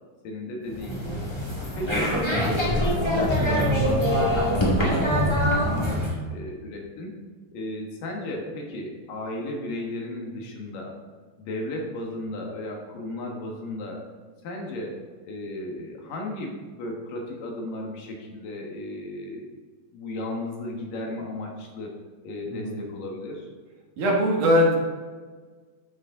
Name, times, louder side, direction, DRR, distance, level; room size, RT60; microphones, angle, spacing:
voice 1, 0.2-1.2 1.8-7.1 7.5-11.0 11.4-14.0 14.4-19.5 19.9-21.9 22.2-23.5, left 1 dB, 70° left, 0 dB, 3.0 m, -35 dB
sound 1, 0.7-6.1, equal, 15° left, 0.8 m, -23 dB
voice 2, 22.5-22.9 24.0-24.8, equal, 65° right, -2 dB, 2.9 m, -21 dB
12.5 x 6.4 x 3.7 m, 1.4 s
omnidirectional pair, 4.1 m